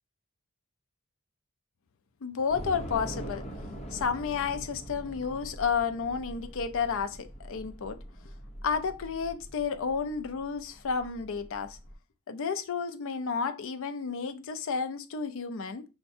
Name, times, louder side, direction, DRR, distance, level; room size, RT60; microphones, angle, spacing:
voice 1, 2.2-3.5 3.9-8.0 8.6-11.8 12.3-15.8, left 6 dB, 65° left, 0.5 m, -31 dB
Train / Subway metro underground, 2.5-11.9, equal, 30° left, 0.9 m, -43 dB
5.6 x 2.2 x 4.3 m
head